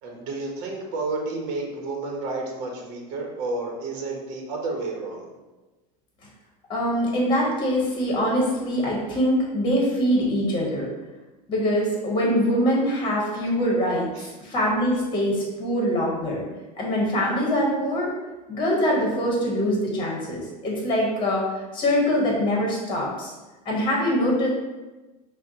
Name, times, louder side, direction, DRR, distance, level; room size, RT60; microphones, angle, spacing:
voice 1, 0.0-5.3 14.1-14.3, right 3 dB, 65° right, 1 dB, 0.9 m, -31 dB
voice 2, 6.7-10.9 11.5-16.4 16.8-18.1 18.5-21.5 21.7-23.3 23.6-24.5, equal, 25° left, -3 dB, 1.1 m, -23 dB
5.5 x 2.2 x 2.8 m, 1.1 s
supercardioid pair, 130°, 21 cm